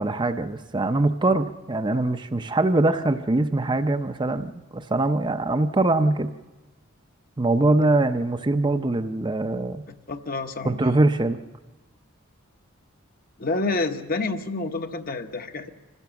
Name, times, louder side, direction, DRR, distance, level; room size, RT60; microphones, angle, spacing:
voice 1, 0.0-6.3 7.4-9.8 10.6-11.4, right 2 dB, 20° right, 8 dB, 0.6 m, -23 dB
voice 2, 10.1-10.8 13.4-15.7, left 3 dB, 45° left, 7 dB, 1.0 m, -28 dB
25.5 x 15.5 x 7.0 m, 1.2 s
head